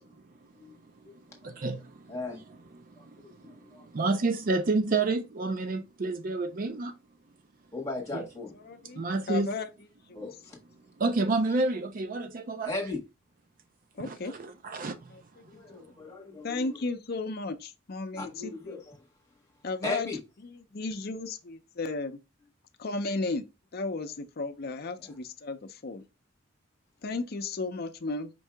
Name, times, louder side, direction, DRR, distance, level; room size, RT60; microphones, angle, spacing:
voice 1, 1.4-2.1 2.7-7.0 8.1-8.3 9.0-9.5 11.0-12.7 14.0-15.1, right 3 dB, 45° right, 0.4 m, -30 dB
voice 2, 2.1-2.4 3.0-3.3 3.7-3.8 7.7-8.5 10.1-10.6 12.6-13.0 15.5-16.7 18.2-18.9 19.8-20.2 25.0-25.1, left 2 dB, 15° left, 1.5 m, -37 dB
voice 3, 8.5-9.7 10.1-10.3 13.9-14.4 15.1-15.2 15.5-15.8 16.4-18.7 19.6-20.1 20.4-22.2 22.8-23.5 23.7-26.0 27.0-28.3, left 3 dB, 50° left, 0.6 m, -34 dB
5.3 x 2.8 x 3.4 m
head